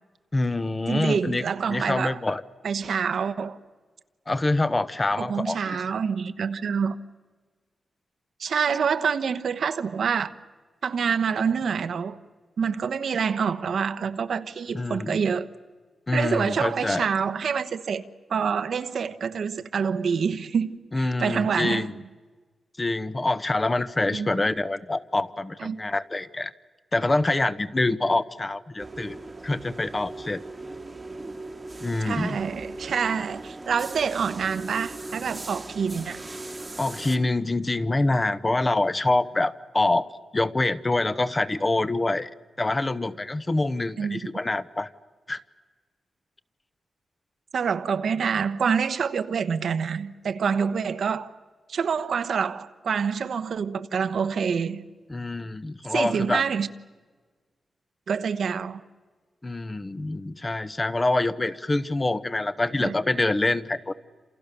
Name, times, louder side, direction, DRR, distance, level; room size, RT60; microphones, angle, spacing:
voice 1, 0.3-2.4 4.3-5.8 14.7-15.2 16.1-17.1 20.9-21.9 22.8-26.5 26.9-29.2 29.4-30.4 31.8-32.4 36.8-40.1 40.3-42.3 42.6-44.9 45.3-45.4 55.1-56.4 59.4-63.9, left 2 dB, 20° left, 0.9 m, -26 dB
voice 2, 0.9-2.2 2.6-3.6 5.2-6.9 8.4-10.3 10.8-12.2 12.6-15.5 16.1-18.0 18.3-21.8 24.1-24.5 25.6-25.8 32.0-36.2 44.0-44.2 47.5-51.3 51.7-54.8 55.9-56.7 58.1-58.8 62.8-62.9, right 6 dB, 70° right, 1.1 m, -26 dB
sound 1, 28.8-37.2, right 2 dB, 25° right, 1.3 m, -39 dB
29.0 x 28.0 x 6.9 m
wide cardioid pair, 130°, 0 cm